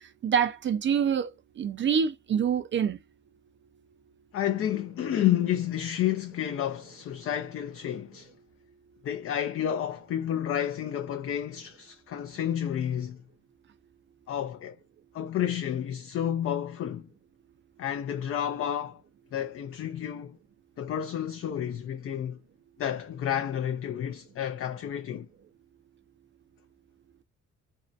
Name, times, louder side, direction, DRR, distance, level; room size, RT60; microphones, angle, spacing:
voice 1, 0.2-1.3 1.6-3.0, right 7 dB, 40° right, 0.4 m, -26 dB
voice 2, 4.3-8.3 9.0-13.2 14.3-14.8 15.1-17.1 17.8-19.0 19.3-20.4 20.8-22.4 22.8-25.3, left 10 dB, 45° left, 0.4 m, -30 dB
2.6 x 2.1 x 2.4 m
cardioid pair, 90°, 30 cm